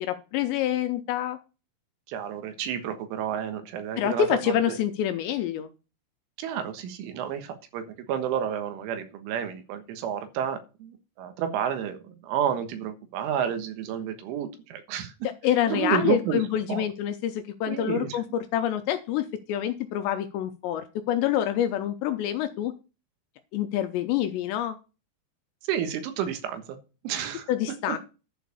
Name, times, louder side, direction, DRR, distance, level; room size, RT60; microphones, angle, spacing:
voice 1, 0.0-1.4 4.0-5.7 15.2-22.7 23.5-24.8 27.5-28.0, left 10 dB, 80° left, 8 dB, 2.8 m, -27 dB
voice 2, 2.1-4.8 6.4-15.1 15.7-16.4 16.7-16.9 17.7-18.2 25.7-26.8 27.0-27.5 27.9-28.0, right 9 dB, 85° right, 8 dB, 3.9 m, -30 dB
11.0 x 4.9 x 6.9 m, 0.32 s
omnidirectional pair, 5.4 m